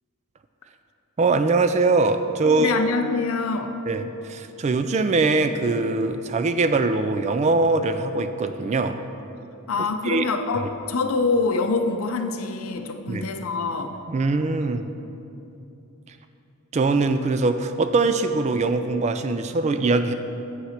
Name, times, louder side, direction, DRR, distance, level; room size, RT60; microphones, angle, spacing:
voice 1, 1.2-2.7 3.9-9.0 10.0-10.3 13.1-13.3 14.1-14.9 16.7-20.1, right 3 dB, 30° right, 9 dB, 0.3 m, -22 dB
voice 2, 2.4-3.8 9.7-14.0, left 3 dB, 75° left, 7 dB, 0.6 m, -25 dB
8.0 x 5.7 x 5.8 m, 2.8 s
head